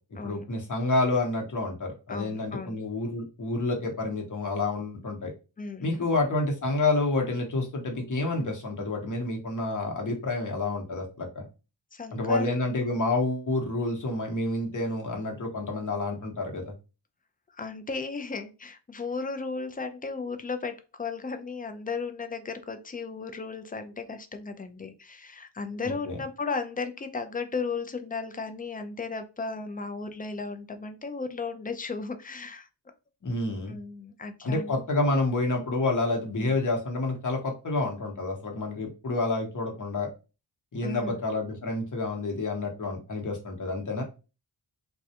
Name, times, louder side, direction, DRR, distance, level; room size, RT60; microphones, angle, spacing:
voice 1, 0.2-5.3 5.8-11.5 12.1-16.7 25.8-26.2 33.2-33.8 34.4-40.1 40.7-44.0, left 2 dB, 40° left, 1 dB, 0.9 m, -29 dB
voice 2, 2.1-2.8 5.6-6.1 11.9-12.5 17.5-32.7 33.7-34.7 36.3-36.6 40.8-41.2, left 4 dB, 20° left, 8 dB, 0.3 m, -35 dB
2.3 x 2.1 x 2.7 m, 0.31 s
wide cardioid pair, 65°, 45 cm